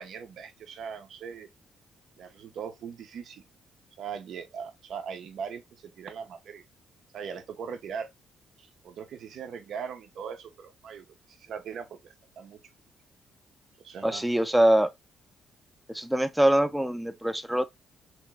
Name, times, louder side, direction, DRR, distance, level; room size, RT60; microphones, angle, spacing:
voice 1, 0.0-1.5 2.2-3.4 4.0-6.6 7.1-8.1 8.6-12.6 13.8-14.2, right 7 dB, 70° right, 0.8 m, -40 dB
voice 2, 14.0-14.9 15.9-17.7, right 1 dB, 5° right, 0.6 m, -23 dB
3.1 x 3.1 x 3.3 m
cardioid pair, 90°, 0 cm